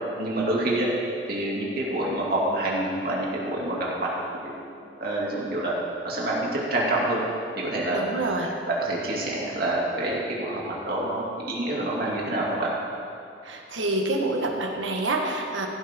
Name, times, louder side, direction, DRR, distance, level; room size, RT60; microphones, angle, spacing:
voice 1, 0.2-0.9 1.3-4.1 4.4-4.5 5.0-5.7 6.0-7.2 7.6-8.0 8.7-12.7, right 1 dB, 50° right, -4 dB, 2.8 m, -27 dB
voice 2, 7.9-8.5 13.4-15.7, right 2 dB, 90° right, 1 dB, 1.6 m, -27 dB
16.0 x 11.5 x 3.9 m, 2.7 s
head